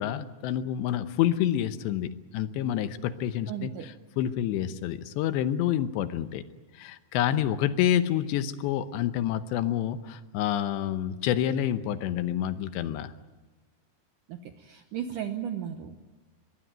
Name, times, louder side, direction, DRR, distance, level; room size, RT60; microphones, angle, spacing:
voice 1, 0.0-6.4 6.7-13.1, left 11 dB, 80° left, 11 dB, 3.1 m, -28 dB
voice 2, 3.5-3.9 14.3-16.1, right 9 dB, 75° right, 6 dB, 2.0 m, -35 dB
22.5 x 21.0 x 9.2 m, 1.2 s
omnidirectional pair, 5.1 m